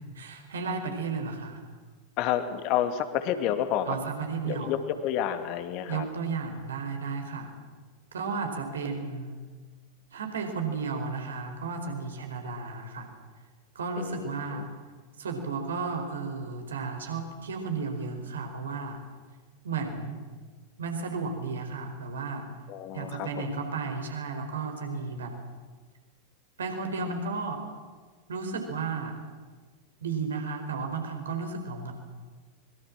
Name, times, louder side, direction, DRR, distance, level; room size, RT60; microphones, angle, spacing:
voice 1, 0.1-1.6 3.9-4.7 5.9-7.5 8.1-9.4 10.1-13.1 13.7-14.7 15.2-19.0 19.6-20.2 20.8-22.4 22.9-25.4 26.6-27.6 28.3-29.2 30.0-31.9, right 4 dB, 65° right, 5 dB, 4.5 m, -33 dB
voice 2, 2.2-4.0 4.4-6.1 14.0-14.3 22.7-23.5, left 10 dB, 40° left, 8 dB, 2.4 m, -29 dB
25.0 x 22.5 x 7.5 m, 1.4 s
figure-of-eight pair, 90°, 0 cm